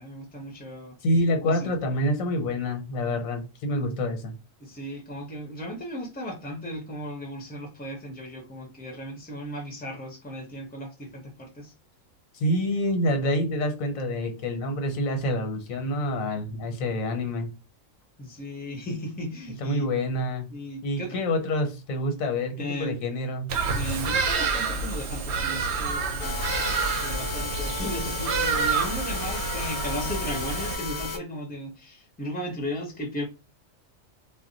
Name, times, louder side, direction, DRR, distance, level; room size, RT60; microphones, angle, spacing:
voice 1, 0.0-0.9 1.4-1.7 4.6-11.7 18.2-19.8 20.5-21.2 22.6-23.0 23.7-26.4 27.0-33.2, equal, 10° left, 0.6 m, -36 dB
voice 2, 1.0-4.3 12.3-17.5 19.6-20.5 20.8-23.5, left 1 dB, 80° left, 1.2 m, -27 dB
Bird vocalization bird call bird song, 23.5-30.8, right 4 dB, 65° right, 0.8 m, -28 dB
sound 1, 26.2-31.2, left 3 dB, 65° left, 0.4 m, -33 dB
2.3 x 2.2 x 3.8 m
omnidirectional pair, 1.4 m